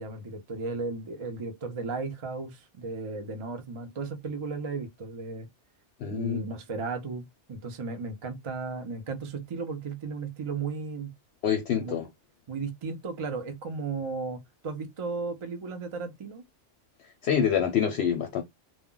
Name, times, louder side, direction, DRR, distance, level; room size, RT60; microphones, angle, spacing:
voice 1, 0.0-5.5 6.1-11.1 11.8-12.0 12.5-16.4, right 4 dB, 40° right, 0.4 m, -35 dB
voice 2, 6.0-6.4 11.4-12.1 17.2-18.4, left 8 dB, 65° left, 0.8 m, -26 dB
2.2 x 2.1 x 3.7 m
omnidirectional pair, 1.2 m